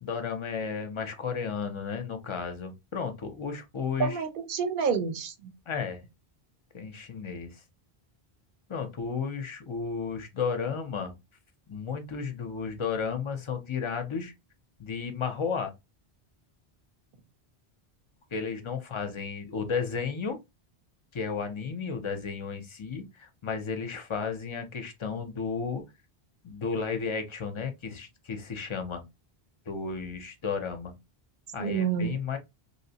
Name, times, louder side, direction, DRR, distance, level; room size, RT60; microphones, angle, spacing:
voice 1, 0.0-4.2 5.7-6.0 6.7-7.6 8.7-11.1 11.7-14.3 14.8-15.7 18.3-20.4 21.1-25.8 26.4-29.0 29.7-30.9 31.5-32.4, left 5 dB, 40° left, 0.4 m, -33 dB
voice 2, 4.0-5.5 31.6-32.1, right 6 dB, 60° right, 0.7 m, -28 dB
2.8 x 2.0 x 2.7 m
omnidirectional pair, 1.1 m